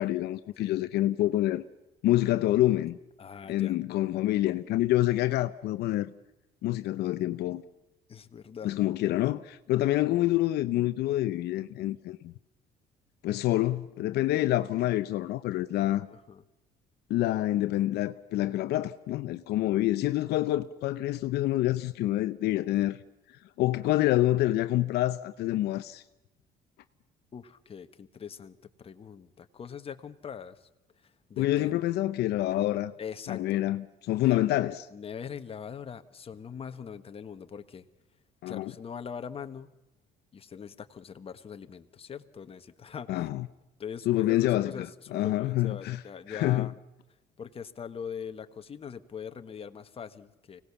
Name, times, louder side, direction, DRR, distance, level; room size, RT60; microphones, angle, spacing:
voice 1, 0.0-1.6 2.0-3.0 3.5-6.1 6.6-7.6 8.6-12.3 13.2-16.1 17.1-23.0 23.6-26.0 31.4-32.9 33.3-34.8 38.4-38.7 43.1-43.5 44.1-44.9 45.1-46.0 46.3-46.7, left 15 dB, 75° left, 0.8 m, -27 dB
voice 2, 3.2-3.8 8.1-8.7 16.1-16.4 27.3-30.7 31.3-31.7 33.0-33.7 34.1-34.4 34.9-37.8 38.5-39.7 40.3-43.3 43.8-46.7 47.4-50.6, left 7 dB, 35° left, 1.4 m, -42 dB
25.0 x 18.0 x 7.0 m
cardioid pair, 110°, 17 cm